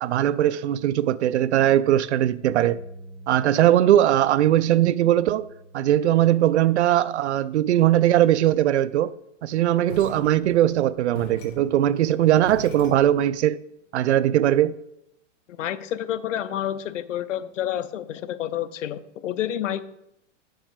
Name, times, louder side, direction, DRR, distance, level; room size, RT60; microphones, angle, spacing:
voice 1, 0.0-2.8 3.3-5.5 5.7-9.1 9.4-13.6 13.9-14.7, right 12 dB, 65° right, 0.5 m, -20 dB
sound 1, 2.4-8.7, right 1 dB, 10° right, 1.8 m, -47 dB
sound 2, 9.9-13.4, equal, 60° left, 2.0 m, -41 dB
voice 2, 15.5-19.8, left 11 dB, 75° left, 0.7 m, -29 dB
8.2 x 5.7 x 5.0 m
hypercardioid pair, 170°, 37 cm